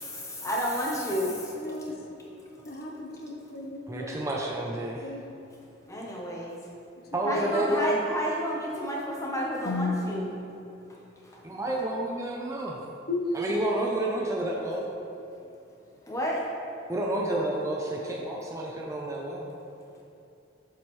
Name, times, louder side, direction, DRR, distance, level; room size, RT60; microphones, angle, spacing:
voice 1, 0.0-1.7 5.9-6.6 7.3-10.3 16.1-16.5, equal, 15° left, -3 dB, 0.9 m, -31 dB
voice 2, 1.5-1.9 2.7-4.1 5.0-5.2 7.2-7.4 9.6-10.1 13.1-13.2, left 3 dB, 50° left, 1 dB, 0.7 m, -34 dB
voice 3, 3.9-5.1 7.1-8.0 11.4-12.8 13.3-14.9 16.9-19.5, right 1 dB, 15° right, -2 dB, 0.4 m, -30 dB
7.1 x 6.2 x 3.1 m, 2.7 s
head